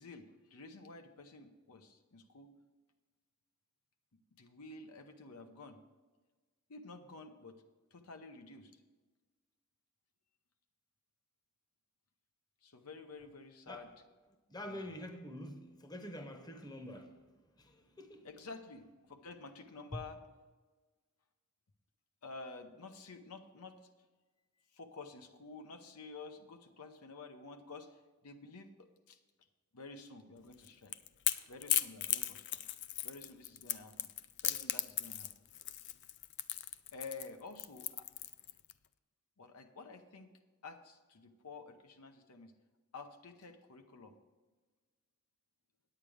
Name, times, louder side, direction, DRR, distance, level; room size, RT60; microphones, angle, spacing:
voice 1, 0.0-2.5 4.4-5.8 6.7-7.6 7.9-8.7 12.6-13.9 14.6-15.0 18.2-20.2 22.2-23.8 24.7-29.2 29.7-30.9 31.5-32.6 33.0-34.1 34.4-35.3 36.9-38.1 39.4-40.3 40.6-42.5 42.9-44.2, left 3 dB, 90° left, 0.9 m, -51 dB
voice 2, 14.5-17.1 17.6-18.3 19.9-20.0, left 1 dB, 20° left, 0.9 m, -46 dB
Crackle / Crack, 30.5-38.7, left 13 dB, 55° left, 0.4 m, -37 dB
9.0 x 9.0 x 4.9 m
head